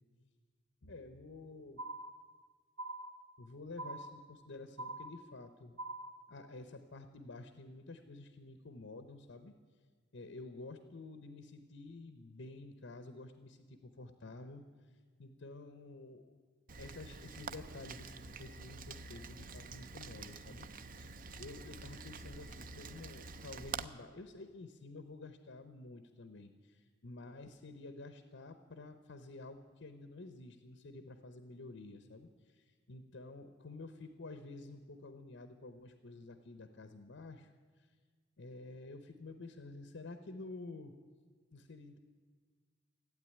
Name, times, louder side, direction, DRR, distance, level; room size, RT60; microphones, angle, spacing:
voice 1, 0.8-1.8 3.4-5.7 6.3-9.5 10.1-16.4 16.8-37.9 38.4-40.9 41.5-42.0, left 2 dB, 70° left, 9 dB, 0.9 m, -50 dB
sound 1, 1.8-2.5 2.8-3.5 3.8-4.5 4.8-5.5 5.8-6.5, right 2 dB, 70° right, 1.5 m, -45 dB
Rain, 16.7-23.8, right 4 dB, 45° right, 0.6 m, -47 dB
16.0 x 8.8 x 9.9 m, 1.5 s
head